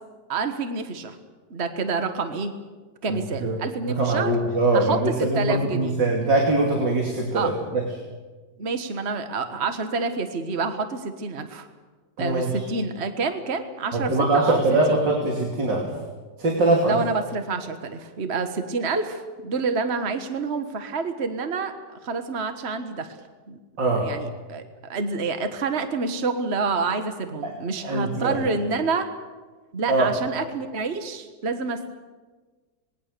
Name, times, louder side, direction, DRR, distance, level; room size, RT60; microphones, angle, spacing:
voice 1, 0.3-1.2 1.5-2.5 3.0-4.3 4.7-5.9 7.3-7.5 8.6-11.7 12.2-14.6 14.9-15.0 16.8-21.7 22.0-23.2 23.5-23.6 24.0-29.1 29.7-31.9, right 4 dB, 40° right, 8 dB, 1.6 m, -28 dB
voice 2, 3.1-3.6 3.9-7.8 12.2-12.6 13.9-15.9 16.4-17.0 23.8-24.1 27.4-27.5 27.8-28.4 29.9-30.1, right 2 dB, 85° right, 0 dB, 3.5 m, -22 dB
26.0 x 21.0 x 6.8 m, 1.3 s
omnidirectional pair, 1.9 m